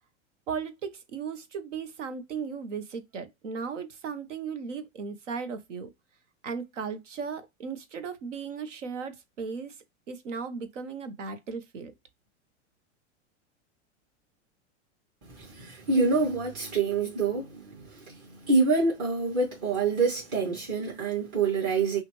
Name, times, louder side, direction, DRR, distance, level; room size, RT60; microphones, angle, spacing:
voice 1, 0.5-5.9 6.4-9.8 10.1-11.9, right 5 dB, 80° right, 1.0 m, -36 dB
voice 2, 15.3-22.0, right 4 dB, 45° right, 2.3 m, -27 dB
5.7 x 2.4 x 3.1 m
hypercardioid pair, 110°, 36 cm